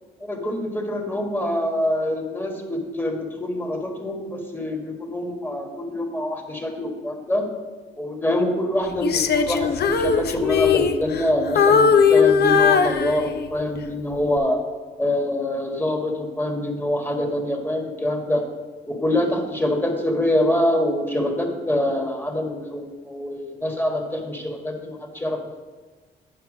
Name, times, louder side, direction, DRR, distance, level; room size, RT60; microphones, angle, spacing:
voice 1, 0.2-7.4 8.0-14.6 15.0-18.4 18.9-25.6, left 1 dB, 10° left, 2 dB, 1.6 m, -25 dB
Female singing, 9.0-11.3 11.6-13.6 14.1-14.4, left 6 dB, 55° left, 0.6 m, -19 dB
9.2 x 5.7 x 5.0 m, 1.4 s
cardioid pair, 90°, 20 cm